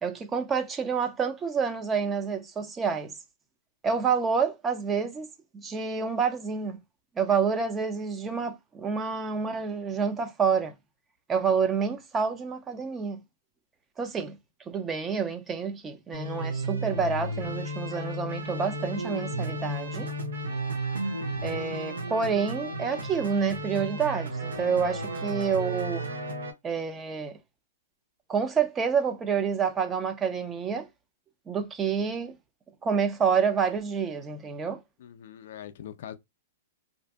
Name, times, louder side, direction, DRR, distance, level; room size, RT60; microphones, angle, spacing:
voice 1, 0.0-3.2 3.8-6.8 7.2-10.7 11.3-13.2 14.0-14.4 14.7-20.1 21.4-26.0 26.6-27.4 28.3-30.9 31.5-32.4 32.8-34.8, right 6 dB, 20° right, 0.5 m, -28 dB
sound 1, 16.1-26.5, right 1 dB, 90° right, 0.8 m, -33 dB
voice 2, 35.0-36.1, left 10 dB, 65° left, 0.4 m, -42 dB
2.5 x 2.5 x 2.3 m
hypercardioid pair, 125°, 0 cm